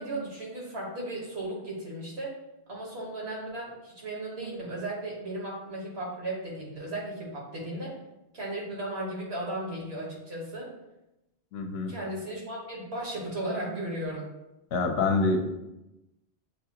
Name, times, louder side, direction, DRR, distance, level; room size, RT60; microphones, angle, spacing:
voice 1, 0.0-2.3 2.7-7.9 8.3-10.7 11.9-14.3, right 1 dB, 70° right, -3 dB, 1.5 m, -35 dB
voice 2, 11.5-11.9 14.7-15.4, left 3 dB, 70° left, 4 dB, 0.8 m, -26 dB
6.7 x 2.3 x 2.8 m, 0.95 s
omnidirectional pair, 1.1 m